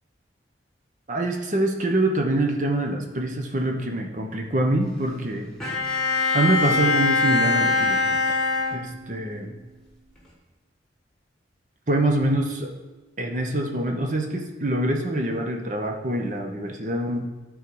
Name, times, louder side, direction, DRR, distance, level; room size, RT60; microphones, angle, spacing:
voice 1, 1.1-5.5 5.9-8.4 8.7-9.5 11.9-12.7 13.2-17.3, right 1 dB, 40° right, 3 dB, 1.0 m, -25 dB
Bowed string instrument, 5.6-9.3, left 3 dB, 5° left, 1.4 m, -23 dB
11.5 x 4.0 x 4.7 m, 1.2 s
head